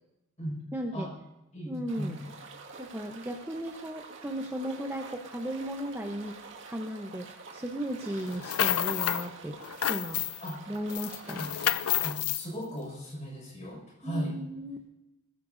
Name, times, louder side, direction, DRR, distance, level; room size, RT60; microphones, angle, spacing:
voice 1, 0.7-1.1 1.6-2.2 2.8-6.3 6.6-9.6 9.9-10.2 10.7-11.4 14.0-14.8, equal, 10° right, 2 dB, 0.9 m, -36 dB
voice 2, 1.5-2.2 10.4-10.6 11.3-11.5 12.0-14.4, right 1 dB, 30° left, 0 dB, 5.8 m, -37 dB
sound 1, 1.9-12.0, right 4 dB, 55° right, 1.9 m, -48 dB
sound 2, 8.3-9.3 9.6-10.5 10.9-12.4, left 11 dB, 70° left, 0.5 m, -29 dB
24.5 x 14.5 x 2.7 m, 0.97 s
head